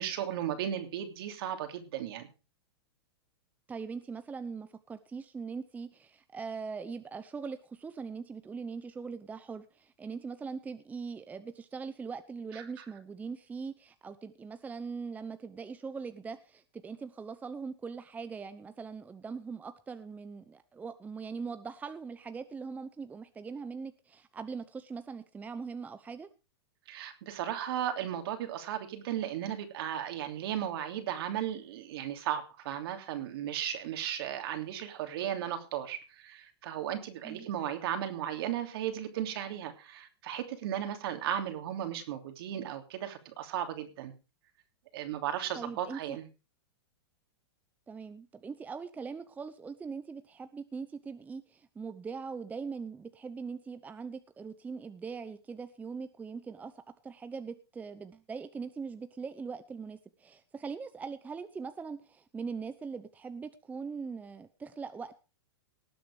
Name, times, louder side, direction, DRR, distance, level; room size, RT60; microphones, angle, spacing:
voice 1, 0.0-2.3 12.5-12.8 26.9-44.1 44.9-46.3, right 10 dB, 60° right, 6 dB, 3.0 m, -35 dB
voice 2, 3.7-26.3 37.2-37.5 45.5-46.2 47.9-56.7 57.0-65.2, right 5 dB, 10° right, 11 dB, 0.8 m, -41 dB
19.0 x 7.8 x 4.8 m, 0.32 s
hypercardioid pair, 140°, 14 cm